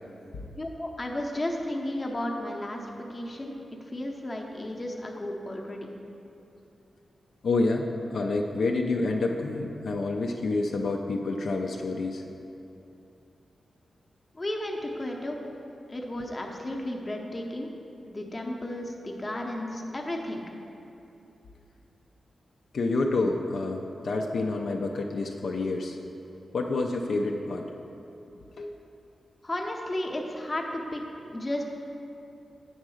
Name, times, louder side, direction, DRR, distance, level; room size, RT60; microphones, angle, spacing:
voice 1, 0.6-3.5 3.9-5.9 14.3-15.4 15.9-17.7 18.0-20.4 29.4-31.0 31.3-31.6, left 1 dB, 25° left, 0 dB, 0.7 m, -33 dB
voice 2, 7.4-12.2 22.7-26.0 26.5-27.7 28.6-28.7, left 3 dB, 65° left, 1 dB, 0.4 m, -28 dB
8.5 x 3.7 x 6.3 m, 2.8 s
wide cardioid pair, 145°, 0 cm